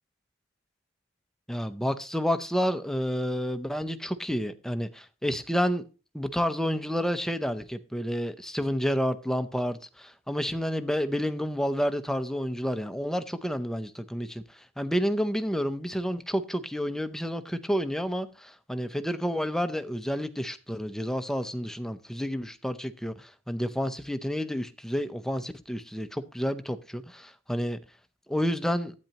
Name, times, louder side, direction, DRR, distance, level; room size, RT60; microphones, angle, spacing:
voice 1, 1.5-5.8 6.1-14.4 14.8-27.8 28.3-28.9, equal, ahead, 0.6 m, -30 dB
12.0 x 9.1 x 2.9 m
head